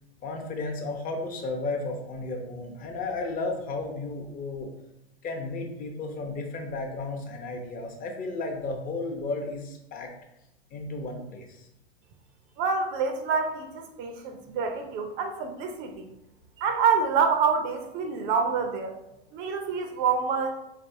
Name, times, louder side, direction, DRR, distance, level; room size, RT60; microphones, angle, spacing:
voice 1, 0.2-4.7 5.2-10.1 10.7-11.7 19.6-19.9, left 3 dB, 25° left, 2 dB, 0.7 m, -33 dB
voice 2, 12.6-16.1 16.6-18.9 19.3-20.5, right 5 dB, 40° right, 5 dB, 0.5 m, -27 dB
3.9 x 3.3 x 2.6 m, 0.87 s
hypercardioid pair, 105°, 32 cm